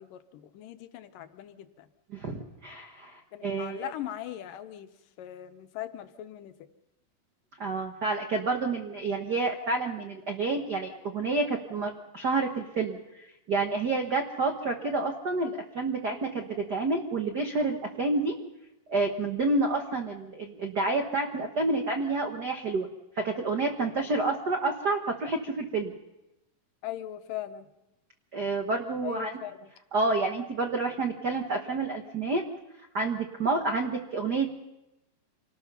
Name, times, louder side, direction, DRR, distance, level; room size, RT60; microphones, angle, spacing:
voice 1, 0.0-1.9 3.3-4.9 5.2-6.5 23.8-24.1 26.8-27.7 29.0-29.7, left 12 dB, 75° left, 9 dB, 2.5 m, -40 dB
voice 2, 2.1-3.9 7.6-18.3 18.9-22.9 23.2-25.9 28.3-29.3 29.9-32.4 32.9-34.6, right 3 dB, 80° right, 4 dB, 0.9 m, -29 dB
27.5 x 19.0 x 5.6 m, 0.93 s
omnidirectional pair, 4.1 m